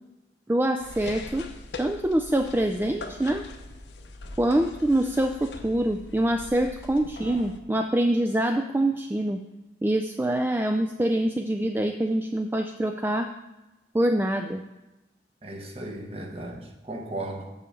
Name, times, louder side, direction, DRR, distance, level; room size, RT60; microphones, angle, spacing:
voice 1, 0.5-1.5 1.8-3.5 4.4-9.4 9.8-13.3 13.9-14.6, right 1 dB, 10° right, 5 dB, 0.3 m, -25 dB
sound 1, 0.8-7.6, left 2 dB, 85° left, 0.9 m, -42 dB
voice 2, 15.4-17.5, right 1 dB, 35° right, 2 dB, 1.2 m, -36 dB
7.1 x 5.6 x 6.8 m, 1.1 s
head